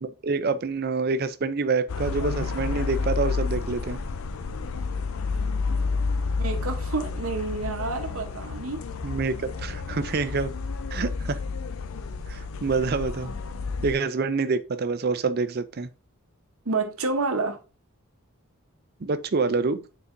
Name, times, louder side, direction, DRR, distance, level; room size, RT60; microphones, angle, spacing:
voice 1, 0.0-4.0 9.0-9.3 9.6-10.5 10.9-11.4 12.3-13.3 13.8-15.9 19.0-19.8, right 4 dB, 45° right, 0.5 m, -27 dB
sound 1, 1.9-13.9, left 4 dB, 70° left, 0.5 m, -30 dB
voice 2, 6.4-8.8 16.6-17.6, right 3 dB, 70° right, 1.0 m, -29 dB
9.5 x 4.1 x 2.6 m
head